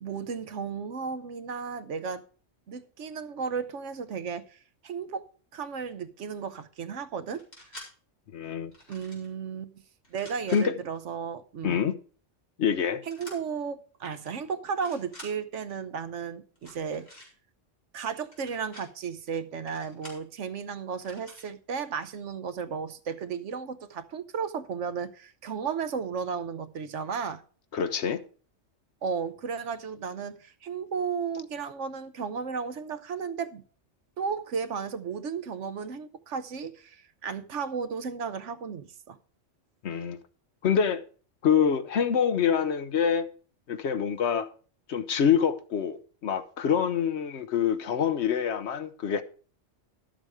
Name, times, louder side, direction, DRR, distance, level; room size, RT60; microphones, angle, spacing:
voice 1, 0.0-2.2 2.7-5.3 5.5-7.4 8.9-9.8 10.1-11.8 13.0-17.1 17.9-27.4 29.0-33.6 34.2-39.2, right 6 dB, 75° right, 1.2 m, -34 dB
sound 1, 7.3-7.9 8.7-9.3 10.0-10.6 13.1-13.4 14.1-14.3 14.7-15.3 16.5-17.3 18.2-18.8 19.7-20.2 21.0-21.5, left 1 dB, 35° left, 4.6 m, -48 dB
voice 2, 8.3-8.7 10.5-10.7 11.6-11.9 12.6-13.0 27.7-28.2 39.8-40.2 40.6-41.0 41.4-43.3 43.7-44.5 44.9-49.2, left 7 dB, 65° left, 1.0 m, -26 dB
12.0 x 7.3 x 4.7 m
omnidirectional pair, 1.3 m